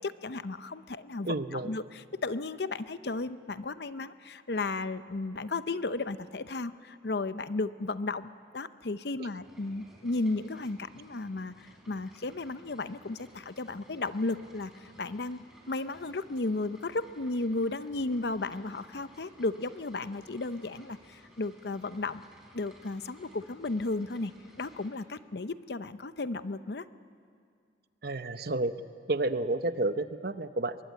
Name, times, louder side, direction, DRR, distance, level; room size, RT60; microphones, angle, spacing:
voice 1, 0.0-22.2 22.5-24.3 24.6-26.8, left 3 dB, 60° left, 13 dB, 0.7 m, -34 dB
voice 2, 1.2-1.7 28.0-28.7 29.1-30.8, right 2 dB, 55° right, 11 dB, 0.8 m, -30 dB
sound 1, 9.4-24.9, equal, 5° right, 3.8 m, -58 dB
23.5 x 22.0 x 9.4 m, 2.3 s
head